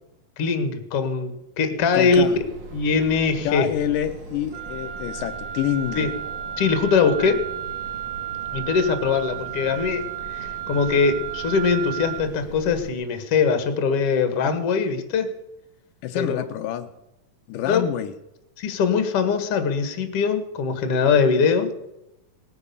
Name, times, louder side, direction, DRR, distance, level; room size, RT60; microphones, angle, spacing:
voice 1, 0.4-2.2 2.7-3.7 6.0-6.1 6.6-7.5 8.5-15.3 16.1-16.4 17.7-17.8 18.6-21.7, left 5 dB, 50° left, 8 dB, 2.3 m, -22 dB
voice 2, 1.9-2.4 3.5-6.1 16.0-16.9 17.5-18.1, left 11 dB, 80° left, 7 dB, 2.3 m, -27 dB
sound 1, 2.1-12.9, right 3 dB, 40° right, 2.0 m, -41 dB
Wind instrument woodwind instrument, 4.5-12.3, right 11 dB, 65° right, 1.9 m, -33 dB
19.5 x 9.8 x 6.9 m, 0.89 s
omnidirectional pair, 3.8 m